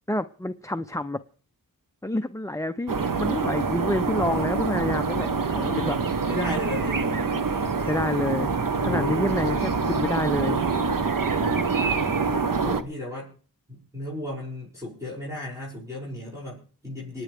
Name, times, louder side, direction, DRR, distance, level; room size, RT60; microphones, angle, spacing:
voice 1, 0.1-1.2 2.0-6.0 7.9-8.5 8.8-10.6, left 1 dB, 10° left, 0.6 m, -28 dB
sound 1, 2.9-12.8, right 4 dB, 60° right, 1.2 m, -25 dB
voice 2, 6.2-7.1 8.8-9.5 12.6-13.3 13.7-17.2, left 1 dB, 10° right, 6.8 m, -34 dB
27.0 x 10.0 x 3.5 m
wide cardioid pair, 75°, 37 cm